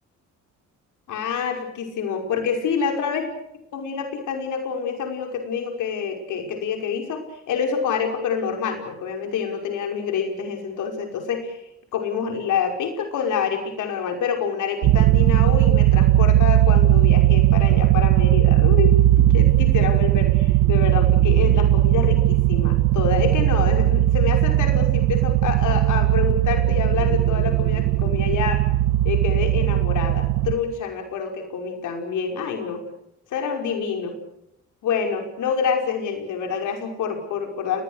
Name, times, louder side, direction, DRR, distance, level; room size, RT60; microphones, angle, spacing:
voice 1, 1.1-3.3 3.7-11.6 11.9-28.6 29.0-32.8 33.3-34.2 34.8-37.8, left 6 dB, 80° left, 4 dB, 5.6 m, -27 dB
sound 1, 14.8-30.5, right 14 dB, 90° right, 1.7 m, -18 dB
28.5 x 21.5 x 6.6 m, 0.79 s
cardioid pair, 90°, 30 cm